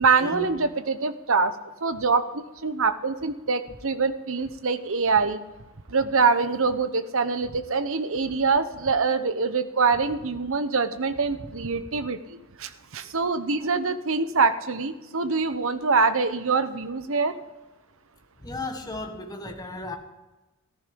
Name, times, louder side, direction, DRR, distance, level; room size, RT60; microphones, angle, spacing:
voice 1, 0.0-5.4 5.9-17.3, right 4 dB, 60° right, 1.0 m, -24 dB
voice 2, 18.4-20.0, left 2 dB, 15° left, 1.5 m, -35 dB
14.5 x 14.0 x 5.3 m
head